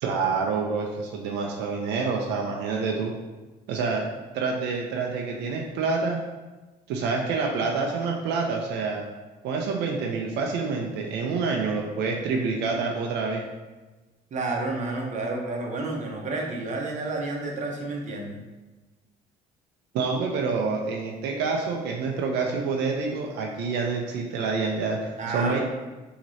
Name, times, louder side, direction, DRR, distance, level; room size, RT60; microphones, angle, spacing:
voice 1, 0.0-3.1 3.7-4.0 4.3-6.2 6.9-9.1 9.4-13.4 19.9-25.6, right 4 dB, 85° right, 0 dB, 0.6 m, -27 dB
voice 2, 14.3-18.4 25.2-25.6, right 2 dB, 45° right, 0 dB, 0.9 m, -30 dB
6.0 x 3.0 x 2.7 m, 1.2 s
cardioid pair, 110°, 17 cm